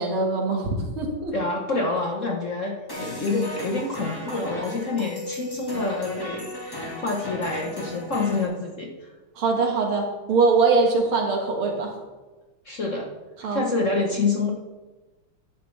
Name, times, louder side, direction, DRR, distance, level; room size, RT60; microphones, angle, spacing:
voice 1, 0.0-1.4 9.4-11.9 13.4-13.7, right 4 dB, 75° right, 1 dB, 2.4 m, -22 dB
voice 2, 1.3-9.1 12.6-13.1 13.5-14.5, left 3 dB, 45° left, 0 dB, 1.1 m, -27 dB
sound 1, 2.9-8.4, left 1 dB, 10° left, 1.6 m, -35 dB
11.0 x 10.5 x 3.2 m, 1.2 s
omnidirectional pair, 2.3 m